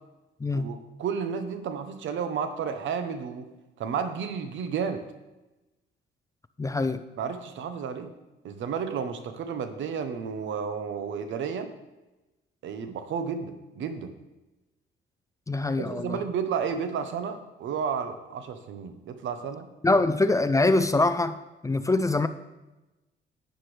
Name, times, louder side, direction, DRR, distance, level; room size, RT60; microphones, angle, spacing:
voice 1, 0.5-3.4 3.8-5.1 7.2-8.1 8.4-11.7 12.6-14.1 15.8-19.7 19.9-20.0, right 6 dB, 75° right, 8 dB, 1.1 m, -32 dB
voice 2, 6.6-7.0 15.5-16.2 19.8-21.4 21.6-22.3, left 2 dB, 15° left, 11 dB, 0.5 m, -23 dB
10.0 x 9.2 x 3.4 m, 1.0 s
cardioid pair, 90°, 20 cm